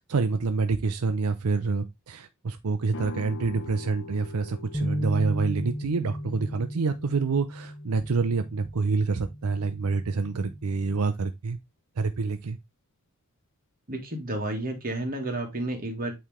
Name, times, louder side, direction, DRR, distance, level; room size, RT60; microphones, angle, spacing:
voice 1, 0.1-11.6 12.0-12.6, right 4 dB, 85° right, 0.6 m, -27 dB
sound 1, 2.9-8.7, left 3 dB, 60° left, 0.7 m, -44 dB
sound 2, 4.7-11.0, equal, 5° left, 0.6 m, -36 dB
voice 2, 13.9-16.1, right 1 dB, 40° right, 2.0 m, -31 dB
8.4 x 3.3 x 3.6 m
head